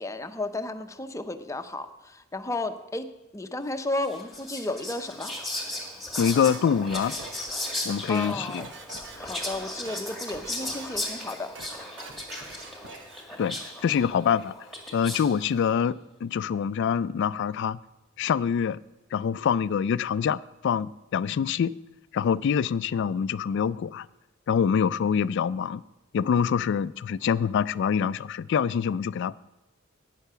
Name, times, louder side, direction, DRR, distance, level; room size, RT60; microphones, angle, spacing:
voice 1, 0.0-3.1 3.3-5.3 8.1-8.7 9.2-12.0, left 2 dB, 15° left, 8 dB, 0.6 m, -33 dB
Whispering, 4.0-15.5, left 1 dB, ahead, 1.9 m, -36 dB
voice 2, 6.2-7.1 7.8-8.7 13.4-14.5 14.9-17.8 18.2-18.8 19.1-21.7 22.1-24.1 24.5-25.8 26.1-29.4, left 7 dB, 60° left, 19 dB, 0.3 m, -25 dB
sound 1, 6.4-7.7 8.0-9.4 9.7-10.0 10.3-11.1 11.4-11.7 12.0-13.3, right 4 dB, 65° right, 1.2 m, -45 dB
11.5 x 9.2 x 5.6 m, 1.1 s
head